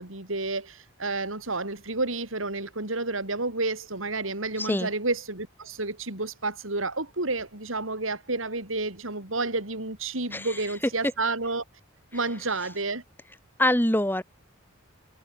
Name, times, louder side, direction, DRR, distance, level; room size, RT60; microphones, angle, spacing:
voice 1, 0.0-11.6 12.1-13.0, right 3 dB, 80° right, 5.0 m, -30 dB
voice 2, 4.6-4.9 10.3-10.6 13.6-14.2, left 1 dB, 10° left, 2.4 m, -24 dB
head